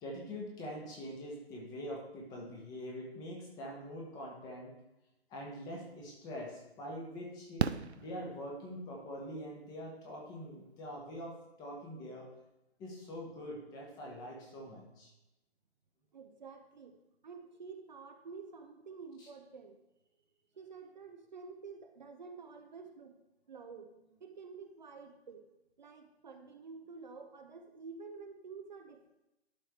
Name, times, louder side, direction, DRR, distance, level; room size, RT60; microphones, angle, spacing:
voice 1, 0.0-4.7 5.3-7.7 7.9-12.3 12.8-15.1 19.2-19.3, equal, 10° left, -1 dB, 1.3 m, -44 dB
Fireworks, 5.9-6.0 7.6-8.9 10.7-10.8 11.0-11.1, right 6 dB, 75° right, 0.5 m, -35 dB
voice 2, 16.1-17.0 17.2-19.8 20.5-23.2 23.5-23.9 24.2-25.4 25.8-29.1, right 5 dB, 45° right, 5 dB, 0.8 m, -49 dB
12.0 x 4.7 x 4.6 m, 0.92 s
figure-of-eight pair, 135°, 32 cm